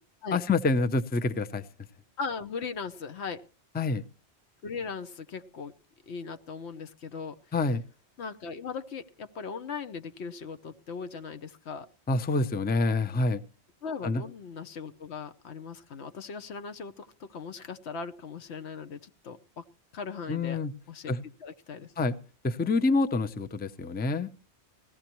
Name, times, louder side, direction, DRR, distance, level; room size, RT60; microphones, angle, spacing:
voice 1, 0.3-1.6 3.7-4.0 7.5-7.8 12.1-13.4 14.0-14.2 20.3-20.7 21.1-21.2 22.0-22.2 22.4-24.3, left 3 dB, 15° left, 10 dB, 0.3 m, -27 dB
voice 2, 2.2-3.4 4.6-5.7 6.1-7.4 8.2-11.9 13.8-19.6 19.9-20.6 20.9-21.1 21.4-21.9, left 5 dB, 90° left, 9 dB, 1.1 m, -38 dB
18.5 x 14.5 x 3.0 m, 0.35 s
omnidirectional pair, 1.1 m